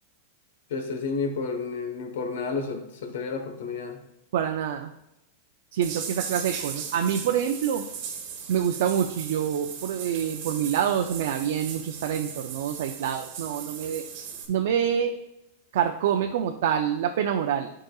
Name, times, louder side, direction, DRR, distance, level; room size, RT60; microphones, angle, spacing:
voice 1, 0.7-4.0, left 4 dB, 75° left, 5 dB, 1.1 m, -31 dB
voice 2, 4.3-4.9 5.7-7.9 8.5-14.0 14.5-15.1 15.7-17.7, right 9 dB, 65° right, 4 dB, 0.4 m, -26 dB
sound 1, 5.8-14.5, right 7 dB, 50° right, 1.2 m, -38 dB
10.5 x 4.9 x 2.3 m, 0.87 s
supercardioid pair, 160°, 0 cm